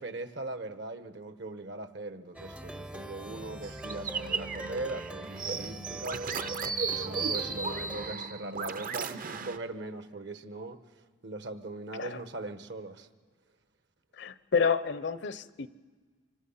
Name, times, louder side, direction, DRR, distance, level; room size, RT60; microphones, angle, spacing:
voice 1, 0.0-6.3 6.9-13.1, right 2 dB, 60° right, 1.2 m, -40 dB
Plucked string instrument, 2.3-8.1, right 1 dB, 5° right, 0.6 m, -43 dB
sound 1, 3.6-9.6, right 5 dB, 45° right, 0.7 m, -35 dB
voice 2, 14.2-15.7, left 5 dB, 65° left, 0.7 m, -29 dB
26.0 x 26.0 x 5.7 m
head